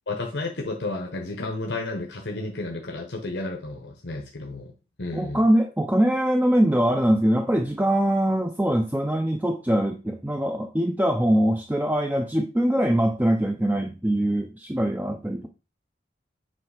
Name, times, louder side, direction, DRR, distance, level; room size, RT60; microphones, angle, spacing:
voice 1, 0.1-4.7 5.0-5.4, left 2 dB, 85° left, 1 dB, 1.0 m, -32 dB
voice 2, 5.1-15.5, right 1 dB, 10° right, 4 dB, 0.4 m, -23 dB
7.7 x 3.1 x 4.9 m, 0.31 s
head